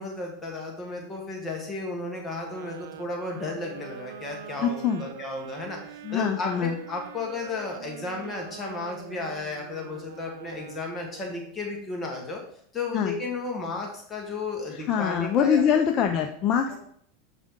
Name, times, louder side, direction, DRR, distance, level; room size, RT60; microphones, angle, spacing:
voice 1, 0.0-12.4 12.7-15.8 16.7-16.8, left 3 dB, 20° left, 0 dB, 1.4 m, -34 dB
sound 1, 2.4-11.6, right 10 dB, 85° right, 0.4 m, -44 dB
voice 2, 4.6-5.0 6.0-6.8 12.9-13.2 14.7-16.7, left 8 dB, 40° left, 4 dB, 0.6 m, -24 dB
7.4 x 4.9 x 3.7 m, 0.65 s
supercardioid pair, 130°, 0 cm